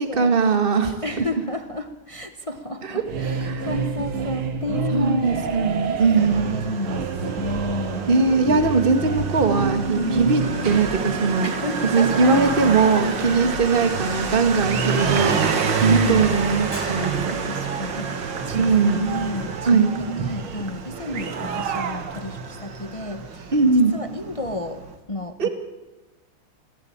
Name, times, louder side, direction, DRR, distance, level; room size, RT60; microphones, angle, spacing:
voice 1, 0.0-1.2 2.8-3.0 3.5-3.7 4.9-6.5 8.1-11.5 11.9-15.3 15.8-17.4 18.5-19.1 19.7-19.9 23.5-23.9 25.4-25.5, right 4 dB, 25° right, 7 dB, 1.9 m, -20 dB
voice 2, 1.0-5.6 6.2-8.3 9.9-10.3 11.4-12.5 15.6-16.3 17.4-23.6 23.9-24.8 25.1-25.5, left 1 dB, 30° left, 8 dB, 0.6 m, -31 dB
sound 1, 3.0-22.5, right 6 dB, 80° right, 2.3 m, -31 dB
Motorcycle, 6.1-24.9, right 5 dB, 60° right, 2.4 m, -29 dB
sound 2, 16.7-21.6, equal, 15° left, 7.4 m, -43 dB
26.5 x 17.0 x 8.8 m, 1.1 s
omnidirectional pair, 2.3 m